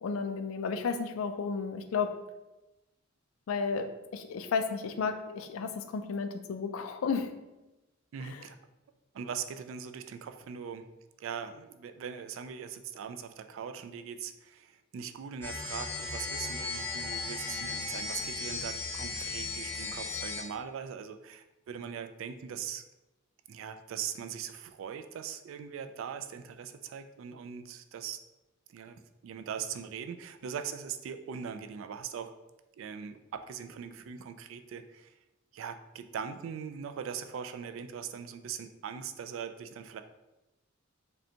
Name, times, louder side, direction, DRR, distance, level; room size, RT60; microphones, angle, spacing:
voice 1, 0.0-2.1 3.5-7.3 8.2-8.4, left 5 dB, 80° left, 8 dB, 0.4 m, -33 dB
voice 2, 8.1-8.6 9.1-10.9 11.2-22.8 23.5-28.2 28.7-32.4 32.8-35.1 35.5-40.0, right 7 dB, 70° right, 9 dB, 0.3 m, -41 dB
sound 1, 15.4-20.4, left 3 dB, 10° left, 0.7 m, -36 dB
5.1 x 2.2 x 2.8 m, 1.0 s
head